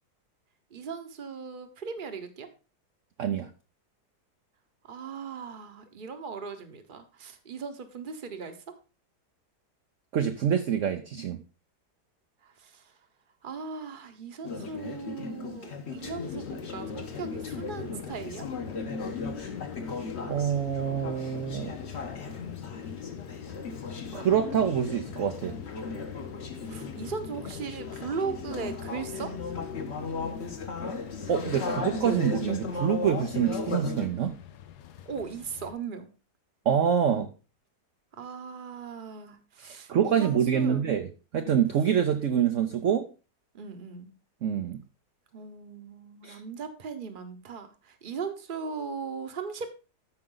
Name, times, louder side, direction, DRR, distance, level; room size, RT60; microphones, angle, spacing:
voice 1, 0.7-2.5 4.9-8.7 12.4-12.9 13.4-18.4 26.7-29.3 35.1-36.1 38.1-40.9 43.5-44.1 45.3-49.8, right 5 dB, 35° right, 8 dB, 1.1 m, -38 dB
voice 2, 3.2-3.5 10.1-11.4 20.3-21.8 24.1-25.6 31.3-34.4 36.6-37.3 39.6-43.1 44.4-44.8 46.2-46.4, right 8 dB, 55° right, 6 dB, 1.0 m, -26 dB
Conversation / Chatter, 14.4-34.1, left 4 dB, 45° left, 1.4 m, -37 dB
sound 1, 16.0-35.7, left 10 dB, 75° left, 1.3 m, -43 dB
13.5 x 5.3 x 3.9 m, 0.33 s
omnidirectional pair, 1.8 m